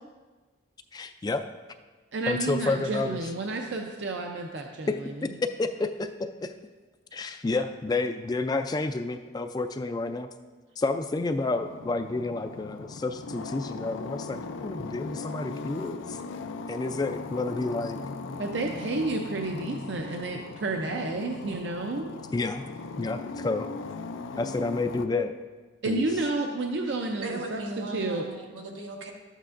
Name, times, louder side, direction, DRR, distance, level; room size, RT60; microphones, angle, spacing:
voice 1, 0.9-1.4 2.3-3.2 4.9-5.0 5.4-6.5 7.1-10.3 10.8-16.2 16.7-18.0 22.3-22.6 23.0-23.7 24.4-25.4 25.9-26.0, left 3 dB, 20° left, 8 dB, 0.3 m, -30 dB
voice 2, 2.1-4.9 5.2-5.3 18.4-22.1 25.8-28.2, right 2 dB, 65° right, 2 dB, 0.6 m, -31 dB
sound 1, 11.4-25.1, left 4 dB, 85° left, 0.4 m, -39 dB
voice 3, 27.2-29.1, right 1 dB, 85° right, 0 dB, 1.3 m, -37 dB
12.0 x 8.2 x 2.5 m, 1.3 s
head